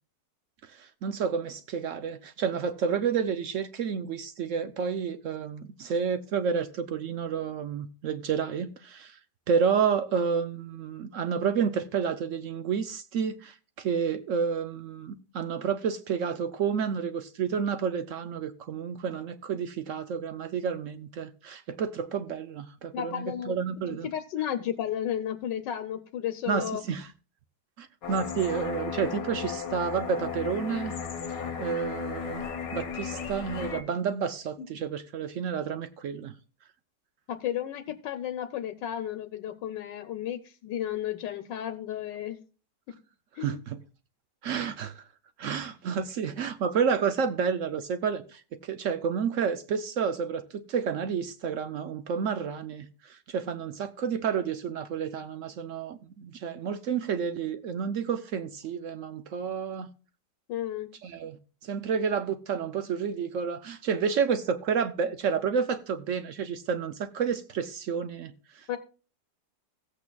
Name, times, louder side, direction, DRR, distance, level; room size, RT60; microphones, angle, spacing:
voice 1, 0.6-9.2 9.5-24.1 26.5-27.1 27.8-30.9 31.6-32.5 32.7-36.3 43.4-43.8 44.4-45.1 45.4-59.9 61.0-61.4 61.6-68.8, right 6 dB, 75° right, 0.7 m, -30 dB
voice 2, 22.9-23.6 24.0-26.8 37.3-42.4 43.4-43.6 60.5-60.9 68.7-68.8, left 10 dB, 80° left, 1.4 m, -33 dB
sound 1, 28.0-33.8, left 7 dB, 55° left, 1.4 m, -35 dB
16.5 x 8.2 x 2.3 m
omnidirectional pair, 2.0 m